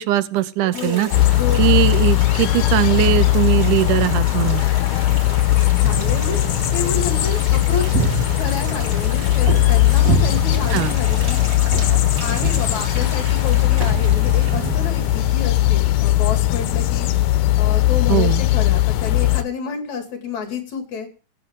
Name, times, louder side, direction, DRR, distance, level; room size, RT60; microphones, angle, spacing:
voice 1, 0.0-1.1 1.6-4.6 10.7-10.9 18.1-18.4, right 15 dB, 80° right, 15 dB, 2.2 m, -20 dB
voice 2, 0.6-1.9 5.8-6.4 6.7-8.0 8.4-11.4 12.2-17.1 17.6-21.1, left 5 dB, 65° left, 5 dB, 3.7 m, -29 dB
sound 1, 0.7-15.5, right 2 dB, 25° right, 2.1 m, -36 dB
sound 2, 1.1-19.4, left 15 dB, 85° left, 2.3 m, -18 dB
sound 3, 5.8-15.5, right 10 dB, 65° right, 1.8 m, -29 dB
18.5 x 8.3 x 3.7 m, 0.35 s
omnidirectional pair, 3.6 m